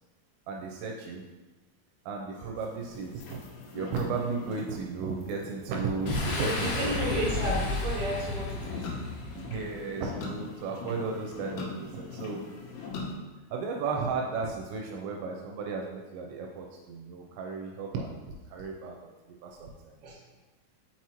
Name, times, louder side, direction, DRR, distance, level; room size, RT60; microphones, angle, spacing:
voice 1, 0.5-1.2 2.1-3.4 3.7-7.0 9.3-12.4 13.5-18.2 18.5-19.0 19.3-20.0, right 4 dB, 80° right, 1 dB, 2.7 m, -34 dB
sound 1, 2.6-13.2, left 3 dB, 90° left, 3.3 m, -42 dB
Boom, 6.1-9.7, left 2 dB, 65° left, 2.7 m, -32 dB
voice 2, 6.4-8.9 20.0-20.2, equal, 60° right, -5 dB, 1.6 m, -33 dB
6.0 x 5.7 x 3.0 m, 1.2 s
omnidirectional pair, 5.3 m